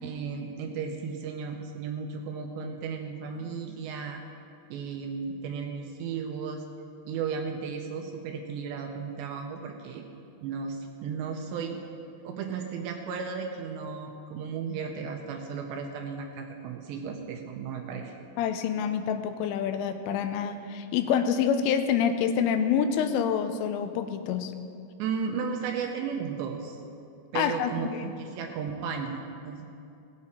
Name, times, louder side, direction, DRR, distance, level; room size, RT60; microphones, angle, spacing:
voice 1, 0.0-4.2 4.7-6.6 7.1-10.1 10.4-11.8 12.2-18.1 25.0-26.8 27.3-29.7, right 6 dB, 80° right, 3 dB, 2.7 m, -34 dB
voice 2, 18.4-24.5 27.3-28.1, left 7 dB, 90° left, 8 dB, 3.2 m, -27 dB
18.5 x 8.5 x 4.3 m, 2.6 s
omnidirectional pair, 5.5 m